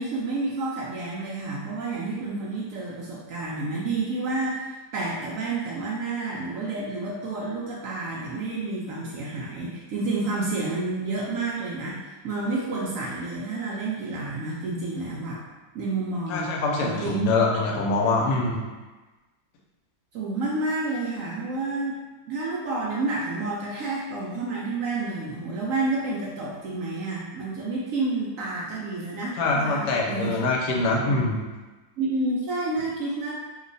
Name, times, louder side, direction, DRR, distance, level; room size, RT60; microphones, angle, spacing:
voice 1, 0.0-15.4 15.7-16.5 16.8-17.4 20.1-22.0 22.3-30.4 32.0-33.3, right 3 dB, 70° right, -5 dB, 0.8 m, -29 dB
voice 2, 16.3-18.6 29.4-31.4, left 3 dB, 85° left, -1 dB, 1.2 m, -24 dB
3.0 x 2.1 x 3.8 m, 1.2 s
omnidirectional pair, 1.8 m